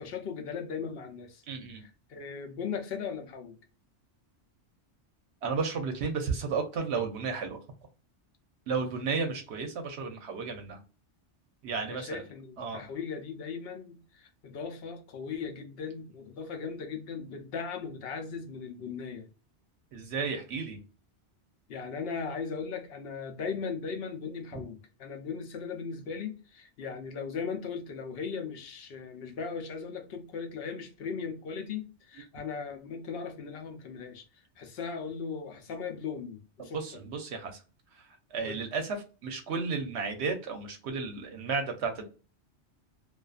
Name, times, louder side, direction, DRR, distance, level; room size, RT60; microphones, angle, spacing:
voice 1, 0.0-1.4 1.7-3.6 11.8-19.3 21.7-34.2 34.6-37.0 38.4-38.6, left 5 dB, 65° left, 0.7 m, -38 dB
voice 2, 1.5-1.8 5.4-7.6 8.7-10.8 11.6-12.2 12.6-12.8 19.9-20.8 36.7-37.6 38.3-39.0 39.2-42.1, right 5 dB, 70° right, 0.8 m, -33 dB
2.4 x 2.3 x 2.3 m
omnidirectional pair, 1.2 m